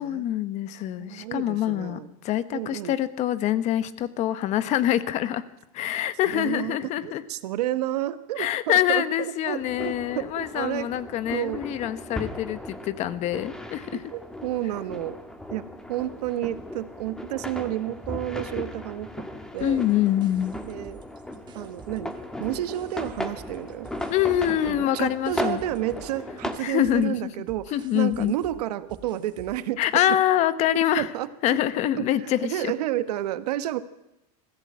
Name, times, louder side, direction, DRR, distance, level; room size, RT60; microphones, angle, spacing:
voice 1, 0.0-5.4 5.7-7.2 8.4-14.0 19.6-20.6 24.1-25.6 26.6-27.3 27.7-28.3 29.8-31.1 31.4-32.7, left 12 dB, 35° left, 14 dB, 1.1 m, -25 dB
voice 2, 0.9-2.1 2.5-2.9 6.3-6.8 7.0-10.9 11.3-11.6 13.9-15.2 15.5-19.2 19.5-19.8 20.6-21.0 21.5-22.1 22.4-23.9 24.6-30.2 31.0-31.6 32.0-33.8, right 13 dB, 85° right, 13 dB, 1.3 m, -31 dB
sound 1, 9.6-26.6, left 1 dB, 5° left, 1.5 m, -37 dB
sound 2, 19.6-22.1 22.4-29.7, right 5 dB, 25° right, 1.9 m, -50 dB
20.5 x 15.5 x 8.7 m, 0.91 s
supercardioid pair, 155°, 20 cm